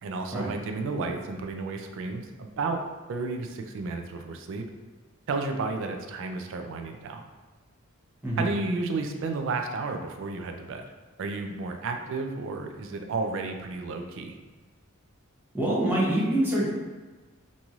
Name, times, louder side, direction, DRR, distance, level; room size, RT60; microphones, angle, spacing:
voice 1, 0.0-2.8 3.1-4.7 5.3-7.2 8.4-10.8 11.2-14.4, right 3 dB, 65° right, 5 dB, 0.3 m, -32 dB
voice 2, 15.5-16.7, right 1 dB, 10° right, -7 dB, 0.7 m, -25 dB
3.0 x 2.6 x 2.3 m, 1.3 s
head